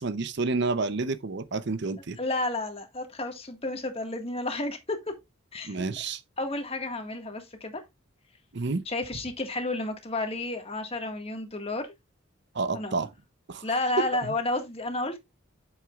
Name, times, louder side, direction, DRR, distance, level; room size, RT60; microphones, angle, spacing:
voice 1, 0.0-2.2 5.6-6.2 8.5-8.8 12.5-13.1 13.5-13.7 14.0-14.3, right 3 dB, 55° right, 0.7 m, -29 dB
voice 2, 2.2-5.1 5.5-5.8 6.4-7.8 8.8-11.9 12.7-12.9 13.6-15.2, left 2 dB, 30° left, 1.7 m, -31 dB
8.2 x 7.9 x 2.4 m
head